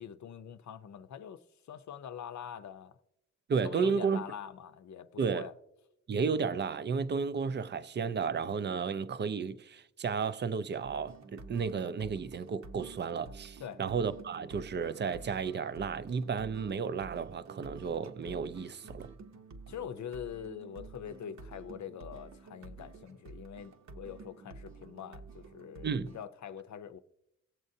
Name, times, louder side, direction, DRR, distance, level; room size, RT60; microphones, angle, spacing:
voice 1, 0.0-1.4 1.7-3.0 3.6-5.5 13.6-13.8 19.7-27.0, left 8 dB, 65° left, 0.6 m, -44 dB
voice 2, 3.5-4.2 5.2-5.5 6.1-19.1 25.8-26.1, right 5 dB, 35° right, 0.4 m, -33 dB
sound 1, 10.8-26.2, right 4 dB, 65° right, 0.9 m, -50 dB
18.0 x 7.6 x 2.7 m
wide cardioid pair, 130°, 30 cm